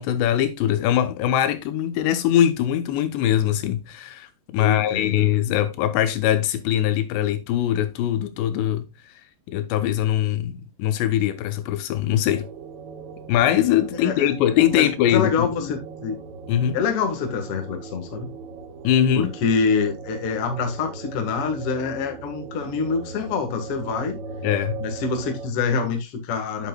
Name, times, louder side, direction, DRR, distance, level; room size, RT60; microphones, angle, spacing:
voice 1, 0.0-8.9 9.5-12.5 13.3-15.7 16.5-16.8 18.8-19.3 24.4-24.8, left 11 dB, 85° left, 3.1 m, -22 dB
voice 2, 4.6-5.3 13.9-14.3 14.8-16.2 16.7-18.3 19.1-24.2 24.8-26.7, left 5 dB, 55° left, 1.6 m, -26 dB
sound 1, 12.3-25.5, right 4 dB, 85° right, 3.6 m, -38 dB
8.4 x 8.2 x 2.3 m
omnidirectional pair, 4.9 m